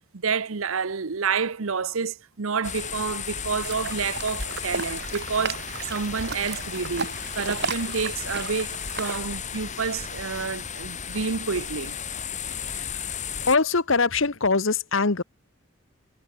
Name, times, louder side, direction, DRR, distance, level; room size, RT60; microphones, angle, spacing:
voice 1, 0.1-12.0, right 5 dB, 75° right, 0.8 m, -29 dB
sound 1, 2.6-13.6, left 7 dB, 35° left, 2.9 m, -34 dB
sound 2, 3.6-9.2, right 5 dB, 50° right, 5.1 m, -35 dB
voice 2, 13.5-15.2, left 4 dB, 65° left, 1.2 m, -22 dB
head